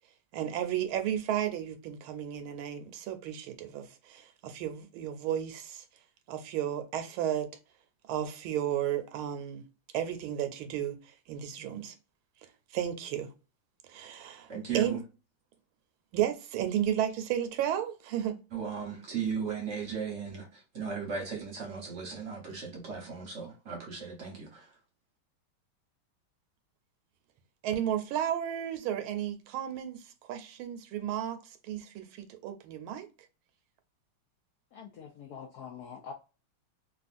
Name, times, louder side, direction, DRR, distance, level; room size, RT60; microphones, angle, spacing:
voice 1, 0.3-5.8 6.3-7.5 8.1-9.7 9.9-11.9 12.7-13.3 13.9-15.0 16.1-18.4 27.6-33.1, right 10 dB, 80° right, 1.4 m, -33 dB
voice 2, 14.5-15.0 18.5-24.7, right 6 dB, 50° right, 0.9 m, -36 dB
voice 3, 34.7-36.1, left 7 dB, 85° left, 0.8 m, -45 dB
3.4 x 2.4 x 2.4 m
omnidirectional pair, 2.3 m